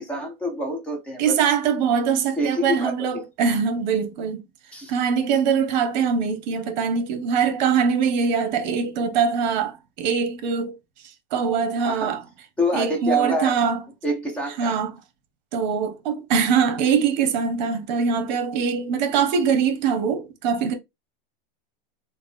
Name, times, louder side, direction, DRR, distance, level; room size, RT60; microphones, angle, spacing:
voice 1, 0.0-1.4 2.4-3.3 4.7-4.9 11.8-12.1 12.6-13.5 14.0-14.8, left 1 dB, 5° left, 0.3 m, -27 dB
voice 2, 1.2-4.4 4.9-10.8 11.0-12.2 12.7-13.8 14.6-14.9 15.5-20.7, right 6 dB, 50° right, 0.8 m, -23 dB
3.5 x 2.1 x 3.3 m
supercardioid pair, 155°, 29 cm